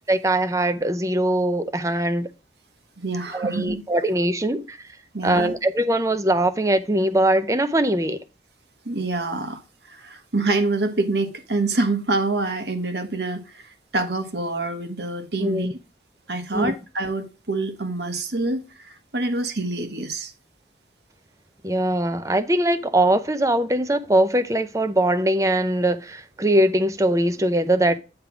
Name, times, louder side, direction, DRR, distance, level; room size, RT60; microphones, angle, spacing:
voice 1, 0.1-2.3 3.3-4.8 5.2-8.2 15.4-15.7 16.5-16.7 21.6-28.0, right 1 dB, 15° right, 0.6 m, -21 dB
voice 2, 3.0-3.8 5.1-5.5 8.8-9.6 9.9-15.7 16.3-20.3, right 2 dB, 65° right, 1.3 m, -26 dB
8.9 x 3.4 x 5.9 m
head